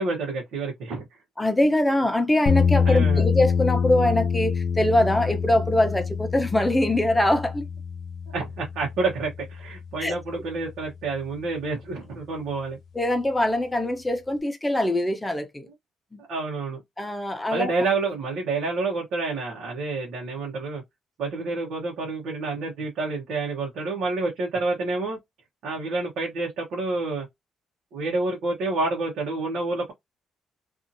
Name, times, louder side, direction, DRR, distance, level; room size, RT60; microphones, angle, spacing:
voice 1, 0.0-1.2 2.8-3.2 8.3-12.8 16.3-16.8 17.5-20.8 21.2-25.2 25.6-27.3 27.9-29.9, right 3 dB, 80° right, 1.1 m, -28 dB
voice 2, 1.4-7.7 10.0-10.1 12.9-15.7 16.1-16.2 17.0-17.7, left 1 dB, 10° left, 0.8 m, -23 dB
sound 1, 2.5-10.5, left 6 dB, 65° left, 0.6 m, -26 dB
2.7 x 2.7 x 2.6 m
cardioid pair, 90°, 0 cm